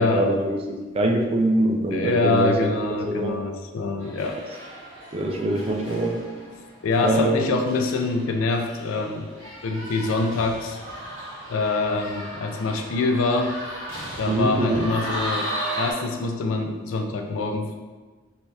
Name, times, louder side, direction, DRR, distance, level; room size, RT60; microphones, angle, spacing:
voice 1, 0.0-2.7 3.0-3.4 5.1-6.2 7.0-7.5 14.3-14.9, right 1 dB, 30° right, 2 dB, 0.3 m, -23 dB
voice 2, 1.9-4.4 6.8-9.3 9.6-10.8 11.5-13.5 14.2-17.7, left 3 dB, 85° left, 4 dB, 0.4 m, -25 dB
sound 1, 4.0-15.9, right 1 dB, 70° right, 0.9 m, -36 dB
3.1 x 2.7 x 2.3 m, 1.3 s
head